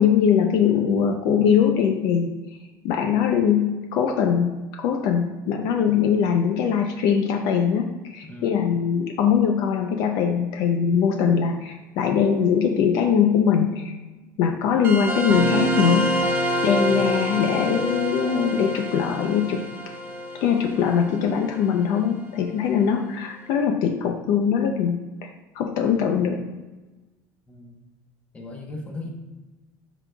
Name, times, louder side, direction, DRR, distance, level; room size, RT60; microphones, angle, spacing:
voice 1, 0.0-2.3 2.8-13.9 14.4-16.1 16.6-19.6 20.4-25.3 25.6-26.4, left 7 dB, 60° left, 4 dB, 0.5 m, -21 dB
voice 2, 8.3-8.6 16.9-17.2 27.5-27.8 28.3-29.1, left 2 dB, 15° left, 1 dB, 0.9 m, -38 dB
sound 1, 14.8-21.9, right 1 dB, 25° right, 0.8 m, -27 dB
10.5 x 3.9 x 2.3 m, 1.2 s
cardioid pair, 160°, 8 cm